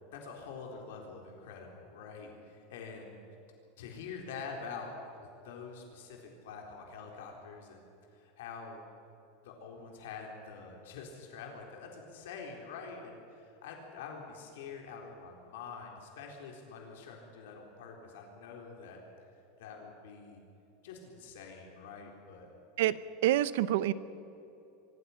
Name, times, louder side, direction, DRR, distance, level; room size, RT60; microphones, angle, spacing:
voice 1, 0.1-3.2 3.8-8.8 9.4-19.0 19.6-20.4 20.8-22.5, left 5 dB, 75° left, 1 dB, 3.8 m, -46 dB
voice 2, 23.2-23.9, right 13 dB, 65° right, 16 dB, 0.8 m, -26 dB
24.5 x 21.0 x 5.8 m, 2.9 s
supercardioid pair, 175°, 0 cm